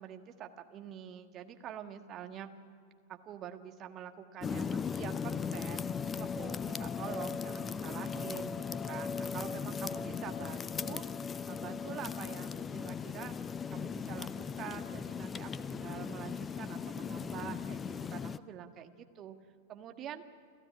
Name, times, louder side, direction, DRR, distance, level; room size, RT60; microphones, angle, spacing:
voice 1, 0.0-2.5 3.1-11.0 11.5-13.3 13.7-19.4 19.7-20.2, right 9 dB, 30° right, 6 dB, 1.6 m, -46 dB
sound 1, 4.4-18.4, left 6 dB, 20° left, 0.5 m, -38 dB
29.0 x 14.5 x 9.7 m, 2.1 s
figure-of-eight pair, 90°, 0 cm